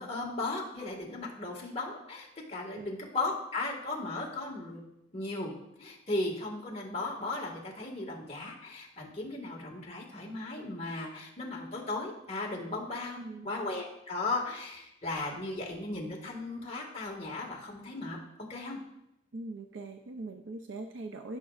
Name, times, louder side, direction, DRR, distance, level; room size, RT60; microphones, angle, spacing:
voice 1, 0.0-4.8 5.1-5.5 5.8-13.2 13.4-18.2 18.5-18.8, left 2 dB, 35° left, -2 dB, 1.8 m, -36 dB
voice 2, 13.2-13.5 19.3-21.4, right 2 dB, 75° right, 5 dB, 0.5 m, -41 dB
15.5 x 6.0 x 2.5 m, 0.83 s
head